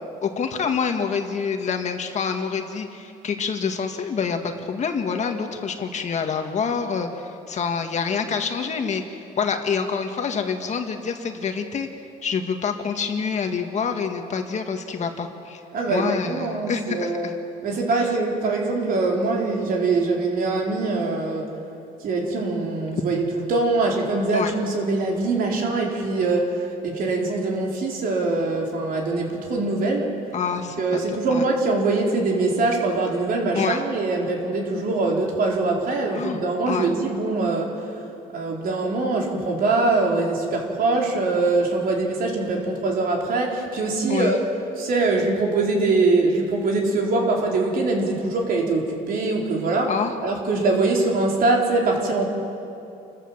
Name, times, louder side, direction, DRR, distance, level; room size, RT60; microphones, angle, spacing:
voice 1, 0.2-11.9 12.2-15.6 15.9-17.4 24.3-24.5 30.3-31.4 33.5-33.8 36.1-36.9 44.1-44.3 49.9-50.1, left 6 dB, 45° left, 5 dB, 1.9 m, -27 dB
voice 2, 15.7-17.3 17.6-21.5 22.0-30.1 30.8-37.9 38.3-44.4 44.8-49.9 50.2-52.2, right 3 dB, 60° right, 0 dB, 4.3 m, -23 dB
28.5 x 14.5 x 7.5 m, 2.7 s
cardioid pair, 110°, 17 cm